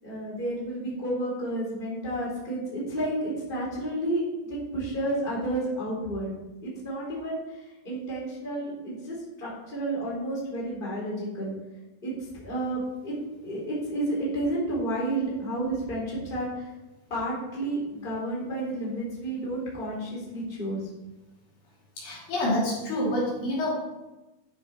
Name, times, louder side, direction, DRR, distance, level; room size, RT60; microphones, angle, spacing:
voice 1, 0.0-4.2 4.5-6.3 6.6-7.4 7.8-11.5 12.0-13.1 13.4-16.6 17.1-20.8, right 1 dB, 15° left, -5 dB, 3.7 m, -31 dB
voice 2, 22.0-23.7, left 1 dB, 60° left, -6 dB, 4.5 m, -27 dB
12.5 x 7.1 x 4.4 m, 1.1 s
omnidirectional pair, 4.6 m